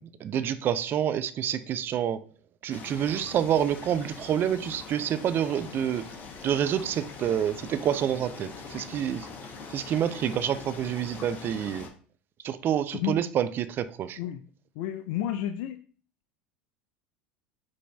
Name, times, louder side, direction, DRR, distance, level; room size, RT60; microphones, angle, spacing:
voice 1, 0.0-2.2 2.6-6.1 6.4-9.3 9.7-11.9 12.4-14.2, right 9 dB, 40° right, 0.3 m, -28 dB
sound 1, 2.7-11.9, left 4 dB, 35° left, 0.8 m, -43 dB
voice 2, 14.8-15.8, left 11 dB, 65° left, 0.3 m, -31 dB
4.7 x 2.6 x 2.2 m
hypercardioid pair, 85°, 6 cm